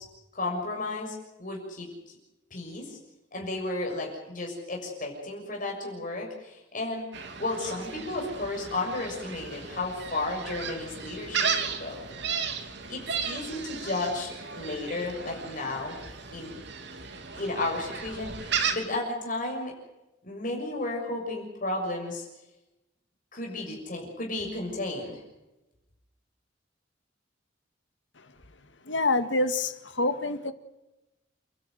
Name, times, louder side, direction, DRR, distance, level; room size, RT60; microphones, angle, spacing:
voice 1, 0.3-1.9 2.5-3.0 3.3-7.1 7.4-12.0 12.9-16.0 16.3-16.6 17.3-19.7 20.2-22.2 23.3-25.2, left 2 dB, 50° left, 6.7 m, -33 dB
Gull seagull, 7.1-18.7, right 6 dB, 70° right, 3.0 m, -35 dB
voice 2, 28.9-30.5, left 2 dB, 85° left, 2.0 m, -26 dB
30.0 x 13.0 x 9.5 m
head